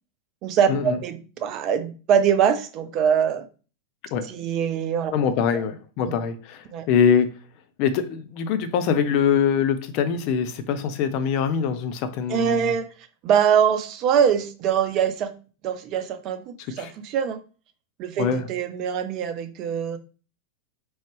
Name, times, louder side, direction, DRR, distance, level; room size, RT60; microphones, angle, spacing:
voice 1, 0.4-3.4 4.3-5.1 5.5-5.6 6.0-6.1 6.7-6.9 12.3-12.9 13.2-15.3 15.6-17.4 18.0-20.0, right 8 dB, 35° right, 0.6 m, -23 dB
voice 2, 5.1-7.3 7.8-12.8 16.8-16.9 18.2-18.5, left 7 dB, 45° left, 0.5 m, -23 dB
4.2 x 3.0 x 3.2 m
figure-of-eight pair, 90°, 0 cm